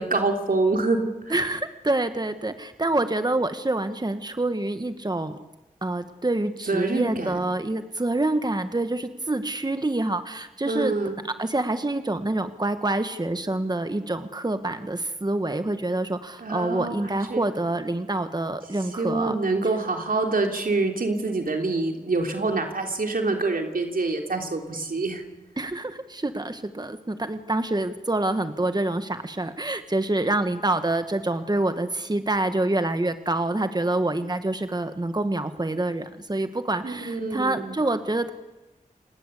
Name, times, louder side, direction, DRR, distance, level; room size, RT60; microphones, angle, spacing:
voice 1, 0.0-1.3 6.7-7.4 10.7-11.2 16.4-17.4 19.0-25.2 36.8-37.8, right 3 dB, 80° right, 4 dB, 3.4 m, -26 dB
voice 2, 1.3-5.4 5.8-10.9 11.4-19.3 25.6-38.3, right 2 dB, 30° right, 9 dB, 1.5 m, -26 dB
29.0 x 18.5 x 8.4 m, 1.0 s
cardioid pair, 45°, 15 cm